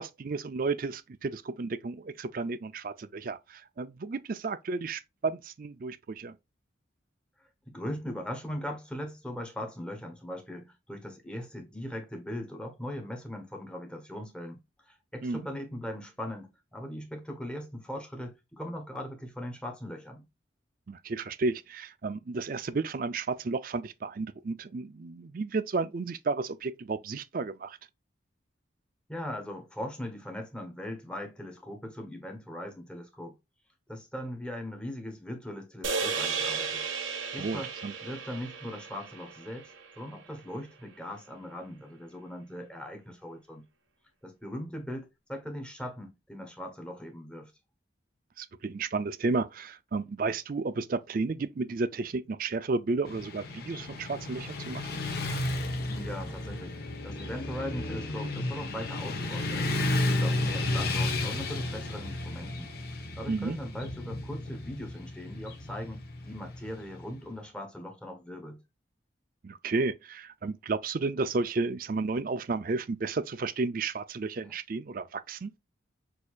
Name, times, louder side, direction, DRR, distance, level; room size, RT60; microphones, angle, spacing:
voice 1, 0.0-6.3 15.2-15.5 20.9-27.8 37.4-37.9 48.4-54.9 63.3-63.6 69.4-75.5, right 3 dB, 45° right, 0.4 m, -32 dB
voice 2, 7.7-20.2 29.1-33.3 33.9-36.8 37.3-37.7 38.0-43.6 44.2-47.5 55.9-59.7 60.1-68.6 74.4-74.6, equal, 5° left, 1.0 m, -40 dB
sound 1, 35.8-40.2, right 5 dB, 85° right, 1.1 m, -34 dB
Motorcycle / Traffic noise roadway noise, 53.0-67.2, left 2 dB, 55° left, 1.0 m, -33 dB
6.3 x 2.8 x 2.4 m
head